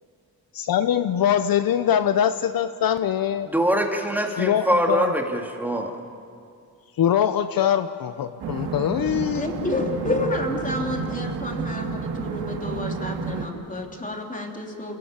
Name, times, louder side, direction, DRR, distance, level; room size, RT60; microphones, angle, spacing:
voice 1, 0.5-3.5 4.4-5.1 7.0-9.9, left 9 dB, 65° left, 11 dB, 0.8 m, -23 dB
voice 2, 3.5-5.9, equal, 5° right, 2 dB, 2.6 m, -23 dB
sound 1, 8.4-13.5, right 5 dB, 85° right, 2.3 m, -30 dB
voice 3, 9.3-15.0, left 2 dB, 20° left, 2 dB, 3.2 m, -30 dB
27.0 x 18.0 x 7.3 m, 2.3 s
cardioid pair, 95°, 38 cm